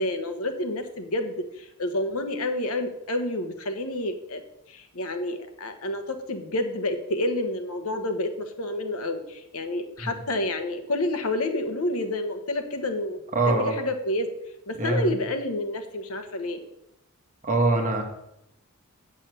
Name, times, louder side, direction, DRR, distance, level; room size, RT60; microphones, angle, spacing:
voice 1, 0.0-4.4 4.7-13.2 13.5-14.3 14.7-16.6, left 1 dB, 75° left, 7 dB, 1.2 m, -29 dB
voice 2, 13.3-13.8 14.8-15.1 17.4-18.0, right 2 dB, 35° right, 2 dB, 1.8 m, -24 dB
8.8 x 6.3 x 6.9 m, 0.84 s
head